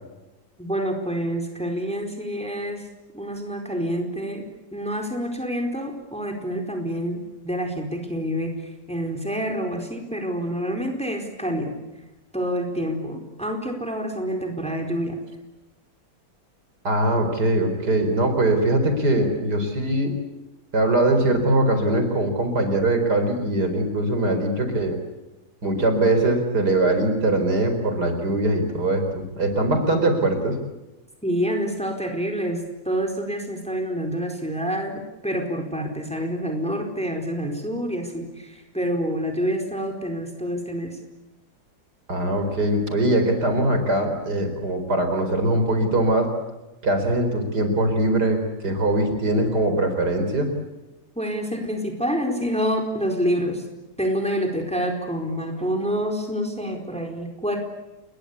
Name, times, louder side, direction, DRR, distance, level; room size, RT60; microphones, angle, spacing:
voice 1, 0.6-2.8 3.1-4.4 4.7-8.5 8.9-11.7 12.3-15.2 31.2-41.0 51.2-53.6 54.0-57.6, equal, 5° left, 3 dB, 4.5 m, -27 dB
voice 2, 16.8-20.1 20.7-25.0 25.6-30.6 42.1-46.3 46.8-50.5, right 1 dB, 60° right, 6 dB, 4.9 m, -22 dB
29.5 x 22.0 x 8.5 m, 1.0 s
omnidirectional pair, 2.0 m